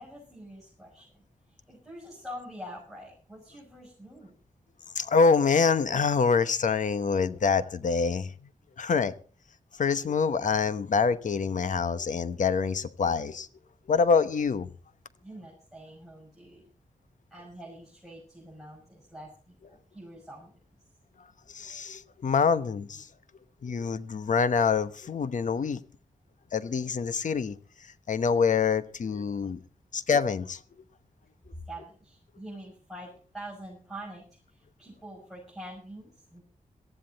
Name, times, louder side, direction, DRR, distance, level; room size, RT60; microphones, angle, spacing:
voice 1, 0.0-4.3 15.2-16.6 17.3-20.5 31.6-36.4, right 1 dB, ahead, 6.4 m, -45 dB
voice 2, 4.9-8.3 8.8-9.1 9.8-13.5 13.9-14.7 21.5-23.1 23.6-25.8 26.5-27.6 28.1-29.6 29.9-30.6, left 5 dB, 70° left, 1.0 m, -25 dB
18.5 x 14.0 x 4.1 m
wide cardioid pair, 110°, 13 cm